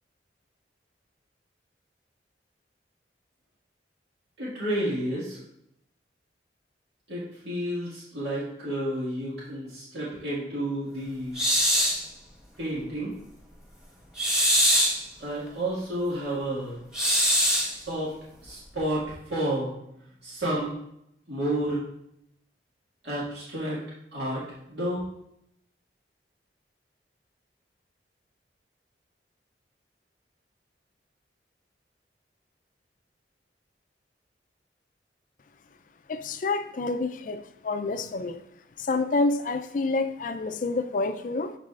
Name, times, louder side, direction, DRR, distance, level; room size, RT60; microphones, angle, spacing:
voice 1, 4.4-5.4 7.1-11.4 12.6-13.1 15.2-16.8 17.7-18.1 18.4-19.7 20.2-20.7 21.3-21.8 23.0-23.8 24.1-24.4 24.7-25.1, right 1 dB, 75° right, -8 dB, 1.9 m, -30 dB
sound 1, 11.4-12.0 14.2-15.0 16.9-17.7, equal, 5° right, 1.3 m, -22 dB
voice 2, 36.1-38.4 38.8-41.6, left 3 dB, 50° left, 9 dB, 0.4 m, -28 dB
12.5 x 4.1 x 2.4 m, 0.78 s
head